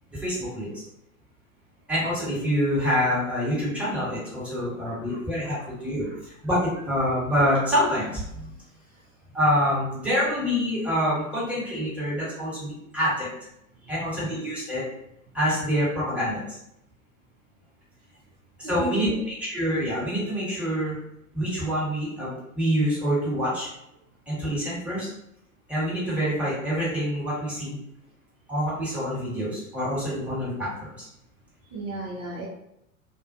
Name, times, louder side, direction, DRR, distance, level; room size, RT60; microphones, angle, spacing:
voice 1, 0.1-0.8 1.9-8.5 9.3-13.3 13.9-14.8 15.3-16.6 18.6-19.1 19.4-21.0 21.3-23.7 24.3-25.1 25.7-27.8 28.5-30.7 31.0-31.1, equal, 5° right, -9 dB, 1.3 m, -26 dB
voice 2, 4.5-5.7 6.0-6.2 13.8-13.9 18.6-19.1 31.7-32.5, right 3 dB, 40° right, -5 dB, 0.6 m, -36 dB
2.4 x 2.1 x 2.5 m, 0.79 s
hypercardioid pair, 90°, 42 cm